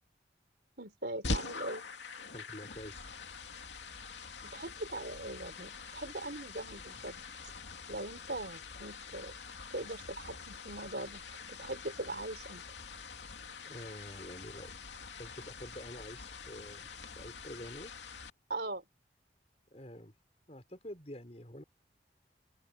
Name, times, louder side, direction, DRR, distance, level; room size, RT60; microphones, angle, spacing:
voice 1, 0.8-1.8 4.4-7.2 7.9-9.3 9.7-11.2 11.5-12.6 18.5-18.8, right 2 dB, 65° right, 3.7 m, -41 dB
sound 1, 1.2-18.3, left 4 dB, 85° left, 2.8 m, -44 dB
voice 2, 2.3-3.1 6.0-6.1 13.6-14.7 15.2-16.9 17.2-17.9 19.7-20.1 20.5-21.6, equal, 35° left, 4.5 m, -47 dB
open air
head